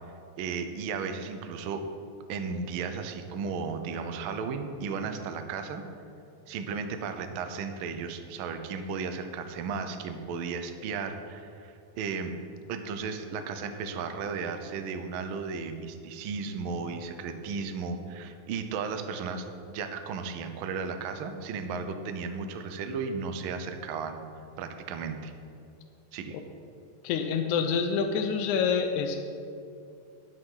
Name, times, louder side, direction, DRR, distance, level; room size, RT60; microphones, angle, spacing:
voice 1, 0.4-1.9 2.3-5.8 6.5-12.3 12.7-24.2 24.6-25.3 26.1-26.4, right 5 dB, 80° right, 7 dB, 1.1 m, -35 dB
voice 2, 27.0-29.2, left 6 dB, 85° left, 5 dB, 2.1 m, -27 dB
10.5 x 7.7 x 5.7 m, 2.6 s
omnidirectional pair, 3.3 m